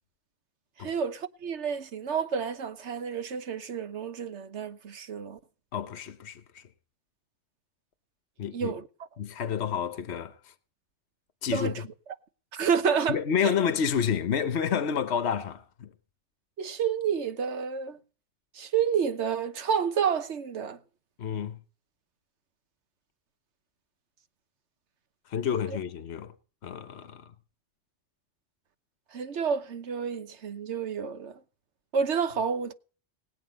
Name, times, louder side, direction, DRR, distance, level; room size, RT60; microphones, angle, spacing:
voice 1, 0.8-5.4 8.5-8.9 11.5-11.8 12.5-13.2 13.4-13.5 16.6-18.0 18.5-20.8 29.1-31.4 31.9-32.7, right 7 dB, 70° right, 1.3 m, -29 dB
voice 2, 5.7-6.6 8.4-8.7 9.2-10.3 11.4-11.7 13.1-15.9 21.2-21.6 25.3-26.3 26.6-27.3, left 7 dB, 65° left, 1.2 m, -29 dB
18.5 x 8.7 x 5.3 m
omnidirectional pair, 1.2 m